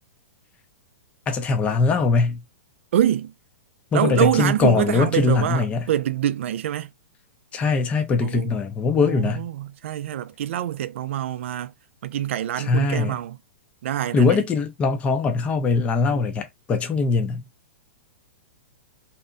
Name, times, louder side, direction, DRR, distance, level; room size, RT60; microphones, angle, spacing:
voice 1, 1.3-2.4 3.9-5.9 7.5-9.5 12.6-13.1 14.1-17.4, left 4 dB, 15° left, 0.5 m, -21 dB
voice 2, 2.9-3.3 3.9-6.9 8.2-8.5 9.0-11.7 12.0-13.4 13.8-14.4, right 11 dB, 65° right, 0.3 m, -25 dB
2.7 x 2.1 x 2.4 m
hypercardioid pair, 140°, 7 cm